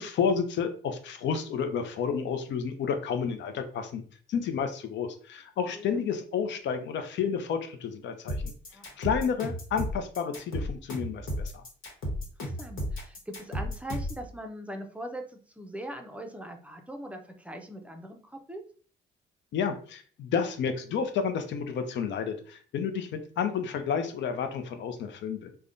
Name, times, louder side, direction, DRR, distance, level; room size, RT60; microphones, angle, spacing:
voice 1, 0.0-4.0 4.3-8.5 9.0-11.6 19.5-25.5, left 6 dB, 65° left, 8 dB, 0.5 m, -31 dB
sound 1, 8.3-14.3, equal, 85° left, 1.1 m, -33 dB
voice 2, 12.4-18.6, right 1 dB, 5° right, 4 dB, 0.5 m, -41 dB
3.4 x 2.1 x 2.5 m, 0.44 s
cardioid pair, 90°, 20 cm